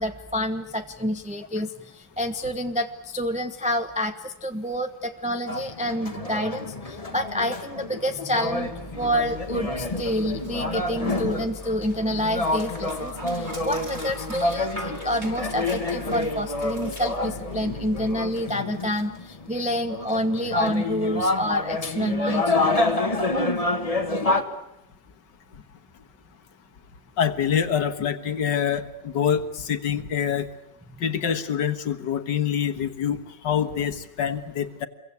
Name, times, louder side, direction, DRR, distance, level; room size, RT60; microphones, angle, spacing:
voice 1, 0.0-22.7 24.1-24.2, equal, 5° right, 5 dB, 0.9 m, -28 dB
sound 1, 5.5-24.4, left 2 dB, 20° left, 1.6 m, -28 dB
Dog, 8.5-18.4, equal, 25° right, 5.4 m, -40 dB
voice 2, 27.2-30.5 31.0-34.9, left 8 dB, 75° left, 9 dB, 2.1 m, -25 dB
27.5 x 23.0 x 8.4 m, 0.84 s
omnidirectional pair, 1.9 m